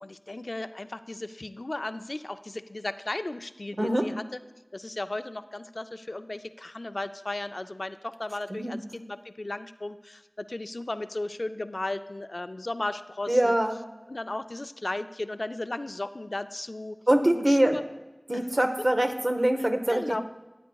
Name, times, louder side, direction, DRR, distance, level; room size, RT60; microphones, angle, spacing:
voice 1, 0.0-4.2 4.7-13.5 14.1-17.0 17.3-17.8 18.3-18.4 19.9-20.2, left 2 dB, 70° left, 11 dB, 0.3 m, -35 dB
voice 2, 13.3-13.8 17.1-17.8 18.3-20.2, right 1 dB, 45° right, 6 dB, 0.9 m, -24 dB
14.5 x 9.1 x 2.3 m, 1.1 s
wide cardioid pair, 40°, 0 cm